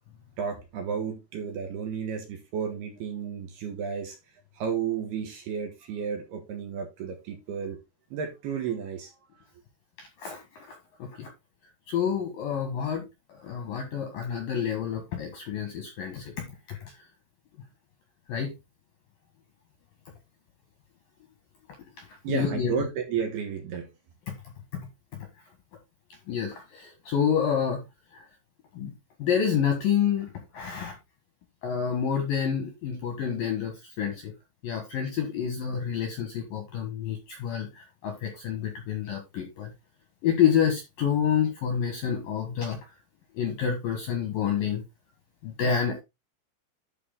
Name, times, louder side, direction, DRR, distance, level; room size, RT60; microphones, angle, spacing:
voice 1, 0.4-4.2 4.5-7.8 8.1-9.1 22.2-23.9, right 7 dB, 65° right, 3.0 m, -32 dB
voice 2, 10.0-11.3 11.9-13.0 13.3-16.3 16.7-16.8 18.3-18.5 22.0-22.7 26.3-27.8 28.1-28.2 28.7-28.9 29.2-31.0 31.6-34.3 34.6-39.7 40.2-42.8 43.3-44.8 45.4-46.0, left 8 dB, 65° left, 2.4 m, -28 dB
11.0 x 4.8 x 3.7 m
omnidirectional pair, 5.8 m